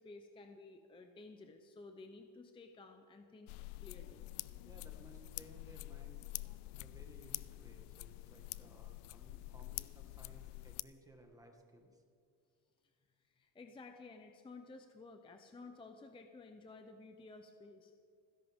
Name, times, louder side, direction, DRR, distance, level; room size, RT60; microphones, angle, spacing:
voice 1, 0.0-3.5 3.8-4.3 13.4-17.9, left 3 dB, 10° left, 5 dB, 0.6 m, -54 dB
sound 1, 3.5-10.8, left 19 dB, 60° left, 0.5 m, -47 dB
voice 2, 4.6-12.0, right 1 dB, 5° right, 2 dB, 1.6 m, -60 dB
29.5 x 11.0 x 3.6 m, 2.2 s
cardioid pair, 145°, 46 cm